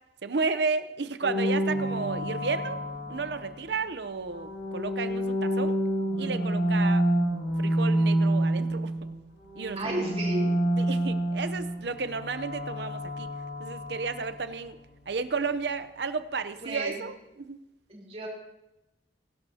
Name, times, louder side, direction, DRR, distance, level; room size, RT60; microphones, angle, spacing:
voice 1, 0.2-2.8 3.1-5.8 6.2-7.0 7.6-8.9 9.6-9.8 10.8-13.3 13.6-14.8 15.1-17.6, right 4 dB, 70° right, 12 dB, 0.7 m, -32 dB
sound 1, 1.2-3.7 4.2-9.1 9.4-14.3, right 1 dB, 90° left, 4.8 m, -28 dB
voice 2, 9.8-10.5 16.6-17.0 17.9-18.3, right 1 dB, 35° right, -2 dB, 4.2 m, -33 dB
23.0 x 11.5 x 2.9 m, 0.93 s
head